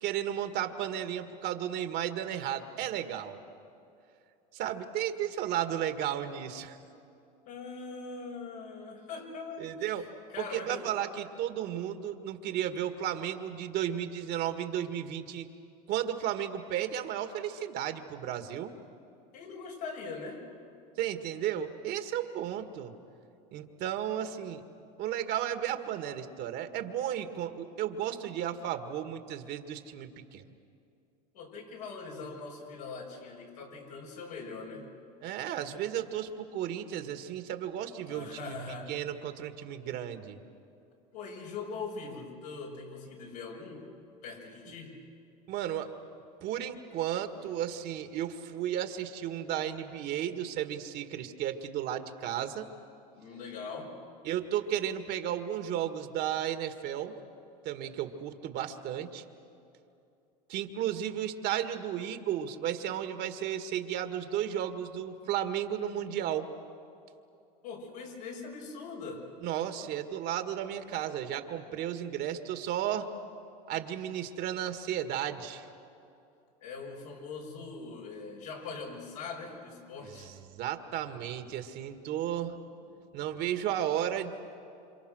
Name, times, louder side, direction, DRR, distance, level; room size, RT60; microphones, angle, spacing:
voice 1, 0.0-3.4 4.5-6.8 9.6-10.1 10.4-15.5 15.9-18.7 21.0-22.9 23.5-24.6 25.0-30.4 35.2-38.6 38.9-40.4 45.5-45.9 46.4-52.7 54.2-57.2 57.6-59.2 60.5-66.5 69.4-73.1 73.7-75.7 80.0-82.6 82.9-84.3, right 10 dB, 60° right, 8 dB, 1.9 m, -34 dB
voice 2, 7.5-10.9 19.3-20.5 31.3-34.9 38.0-39.0 41.1-43.9 44.2-45.0 53.2-54.0 67.6-69.3 76.6-80.3, left 4 dB, 85° left, -2 dB, 6.5 m, -42 dB
29.0 x 26.5 x 6.5 m, 2.6 s
supercardioid pair, 100°, 20 cm